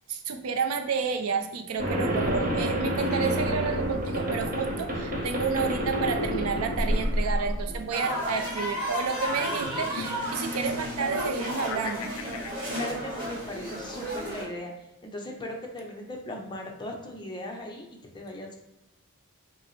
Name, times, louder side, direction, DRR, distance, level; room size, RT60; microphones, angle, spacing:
voice 1, 0.1-12.1, right 5 dB, 75° right, 6 dB, 0.4 m, -30 dB
sound 1, 1.8-12.5, left 3 dB, 70° left, 0.4 m, -40 dB
sound 2, 1.8-7.8, equal, 40° right, 0.7 m, -29 dB
sound 3, 7.9-14.4, equal, 25° right, 1.4 m, -33 dB
voice 2, 12.7-14.7 15.0-17.9 18.1-18.5, left 1 dB, 20° left, 1 dB, 0.6 m, -38 dB
5.0 x 2.0 x 3.1 m, 0.92 s
head